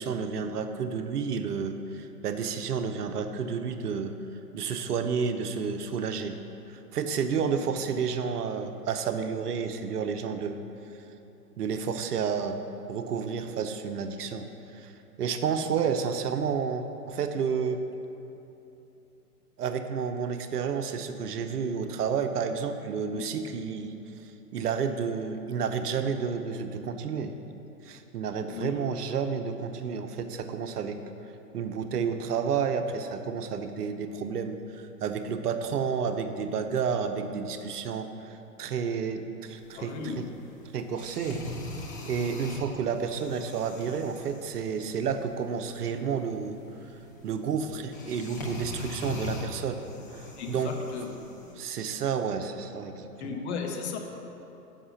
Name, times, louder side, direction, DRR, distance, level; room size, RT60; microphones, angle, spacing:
voice 1, 0.0-4.2 4.5-6.4 6.7-10.6 11.6-12.6 12.9-14.5 14.7-14.9 15.2-17.8 19.6-23.9 24.5-27.4 27.8-31.0 31.5-40.3 40.7-41.4 42.1-46.6 47.2-49.8 50.1-50.7 51.6-53.4, right 6 dB, 70° right, 8 dB, 0.9 m, -31 dB
sound 1, 39.5-51.5, left 2 dB, 15° left, 0.3 m, -42 dB
voice 2, 39.7-40.4 50.4-51.1 53.2-54.0, left 5 dB, 45° left, 2 dB, 1.2 m, -36 dB
7.4 x 5.8 x 7.1 m, 2.9 s
hypercardioid pair, 130°, 47 cm